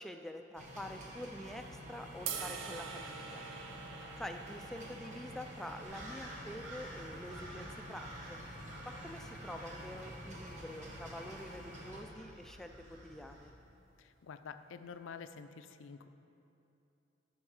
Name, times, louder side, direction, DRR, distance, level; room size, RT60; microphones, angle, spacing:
voice 1, 0.0-3.4 4.2-8.4 8.8-13.5, left 1 dB, ahead, 5 dB, 0.3 m, -47 dB
sound 1, 0.6-12.0, equal, 40° right, 1.2 m, -49 dB
sound 2, 2.3-8.5, right 6 dB, 90° right, 0.7 m, -47 dB
sound 3, 5.8-13.5, right 1 dB, 75° right, 1.2 m, -51 dB
voice 2, 14.0-16.1, left 6 dB, 80° left, 10 dB, 0.4 m, -48 dB
11.5 x 5.3 x 4.8 m, 2.8 s
head